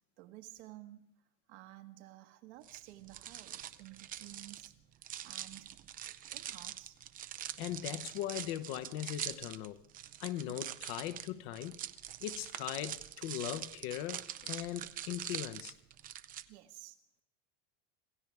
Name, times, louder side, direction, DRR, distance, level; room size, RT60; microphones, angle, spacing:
voice 1, 0.2-1.1 1.5-4.7 5.2-5.8 6.3-7.0 10.5-10.7 16.5-17.0, right 16 dB, 65° right, 1.6 m, -53 dB
sound 1, 2.6-16.4, right 11 dB, 25° right, 0.5 m, -44 dB
voice 2, 7.6-9.8 10.2-11.8 12.2-15.7, left 13 dB, 55° left, 1.1 m, -39 dB
27.0 x 15.5 x 3.5 m
supercardioid pair, 145°, 35 cm